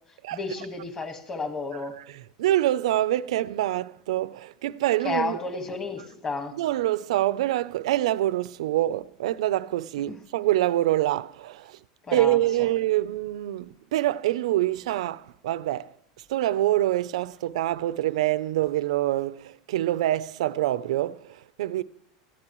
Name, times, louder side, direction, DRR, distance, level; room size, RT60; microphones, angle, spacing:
voice 1, 0.3-1.9 5.0-6.5 10.1-10.2 12.1-12.4, left 3 dB, 20° left, 1.6 m, -32 dB
voice 2, 2.0-5.4 6.5-11.8 12.1-15.9 16.3-21.8, right 14 dB, 85° right, 0.5 m, -26 dB
19.5 x 14.0 x 3.1 m
supercardioid pair, 160°, 3 cm